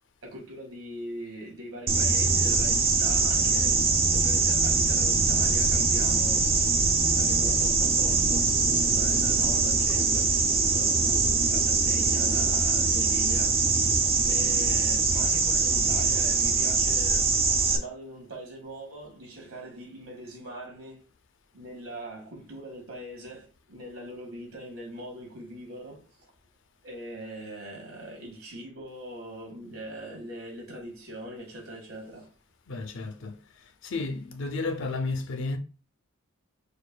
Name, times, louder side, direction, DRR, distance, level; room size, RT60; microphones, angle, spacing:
voice 1, 0.2-3.8 4.1-6.9 7.1-8.6 8.9-11.0 11.5-13.9 14.2-21.1 21.5-26.3 26.8-32.3, right 1 dB, 75° right, 1.7 m, -41 dB
sound 1, 1.9-17.8, right 4 dB, 25° right, 0.4 m, -23 dB
voice 2, 32.7-33.4 33.8-35.6, left 3 dB, 60° left, 0.5 m, -32 dB
6.4 x 2.5 x 2.2 m
head